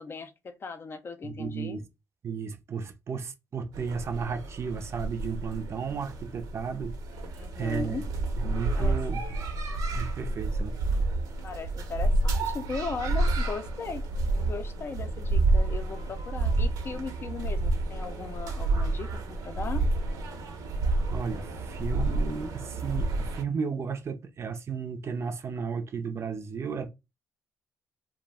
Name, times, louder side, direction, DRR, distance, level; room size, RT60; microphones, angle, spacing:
voice 1, 0.0-1.8 7.4-8.1 8.7-9.3 11.4-19.8, left 5 dB, 40° left, 0.5 m, -38 dB
voice 2, 1.2-1.8 2.2-6.9 7.6-8.0 8.4-9.4 9.9-10.7 21.1-26.9, right 6 dB, 45° right, 0.5 m, -34 dB
sound 1, 3.7-23.4, right 2 dB, 80° right, 0.7 m, -29 dB
2.4 x 2.1 x 3.4 m
cardioid pair, 75°, 6 cm